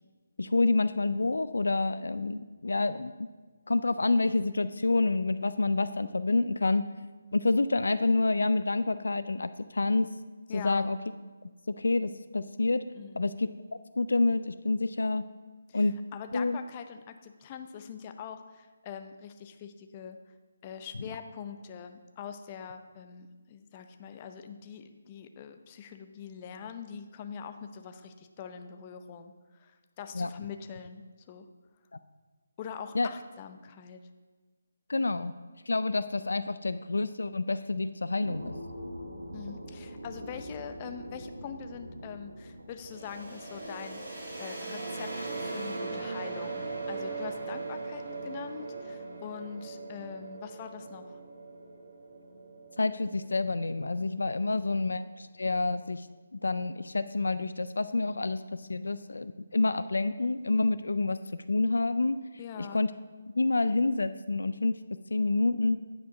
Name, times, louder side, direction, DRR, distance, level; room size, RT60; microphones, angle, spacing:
voice 1, 0.4-3.3 3.7-6.8 7.3-10.1 10.5-11.0 11.8-12.8 13.1-13.5 14.0-15.2 15.7-15.9 16.3-16.6 30.1-30.3 32.9-33.1 34.9-35.3 35.7-38.5 52.8-56.1 56.4-61.2 61.5-62.2 62.7-62.9 63.4-64.7 65.1-65.8, left 3 dB, 75° left, 13 dB, 0.3 m, -28 dB
voice 2, 10.5-10.8 12.9-13.2 15.7-20.2 20.6-31.5 32.6-34.0 39.3-51.2 62.4-62.8, left 7 dB, 30° left, 7 dB, 0.5 m, -43 dB
sound 1, 38.2-44.6, equal, 85° right, 1.1 m, -44 dB
sound 2, 42.8-54.5, right 3 dB, 55° right, 2.7 m, -39 dB
9.3 x 5.0 x 4.9 m, 1.4 s
figure-of-eight pair, 155°, 0 cm